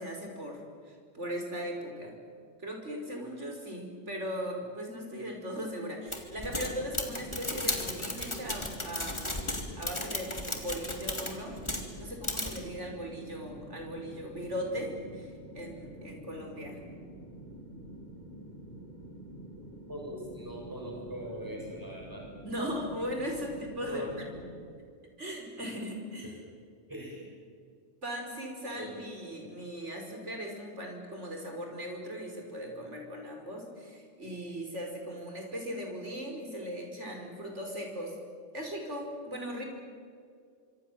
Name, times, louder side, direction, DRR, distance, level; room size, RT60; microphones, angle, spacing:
voice 1, 0.0-2.1 2.6-9.4 9.8-10.3 10.6-16.8 22.4-24.4 25.2-26.4 28.0-38.1 38.5-39.6, equal, 75° right, 2 dB, 5.8 m, -38 dB
sound 1, 6.1-11.9 12.2-12.6, left 1 dB, 25° left, 3.2 m, -35 dB
sound 2, 6.3-24.6, right 1 dB, 40° left, 7.0 m, -48 dB
voice 2, 19.9-22.2 23.9-24.1 26.9-27.3 28.8-29.0, right 1 dB, 15° right, -1 dB, 7.1 m, -40 dB
26.0 x 25.5 x 7.6 m, 2.2 s
omnidirectional pair, 1.2 m